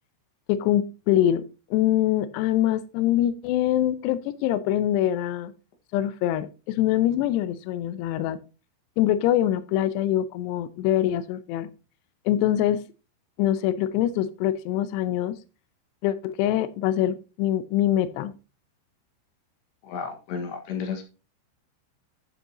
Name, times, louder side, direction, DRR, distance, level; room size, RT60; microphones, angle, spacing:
voice 1, 0.5-1.4 1.7-5.5 5.9-8.4 9.0-11.7 12.3-12.8 13.4-15.4 16.0-18.3, left 12 dB, 90° left, 2.4 m, -24 dB
voice 2, 19.8-21.0, left 6 dB, 65° left, 3.6 m, -32 dB
11.0 x 8.0 x 3.0 m
omnidirectional pair, 5.7 m